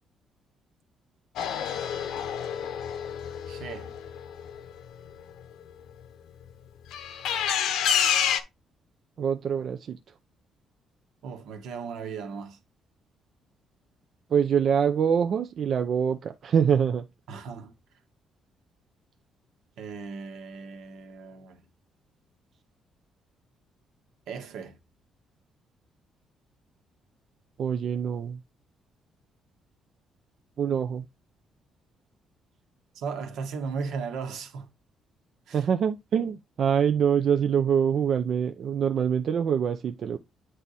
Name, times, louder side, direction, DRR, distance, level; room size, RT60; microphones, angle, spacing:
sound 1, 1.4-5.1 6.9-8.4, left 8 dB, 90° left, 0.9 m, -28 dB
voice 1, 3.5-3.9 11.2-12.6 17.3-17.7 19.8-21.6 24.3-24.8 32.9-34.7 35.5-35.6, right 5 dB, 80° right, 1.4 m, -36 dB
voice 2, 9.2-10.0 14.3-17.1 27.6-28.4 30.6-31.1 35.5-40.2, right 7 dB, 45° right, 0.5 m, -25 dB
8.9 x 3.4 x 4.1 m
cardioid pair, 155°, 0 cm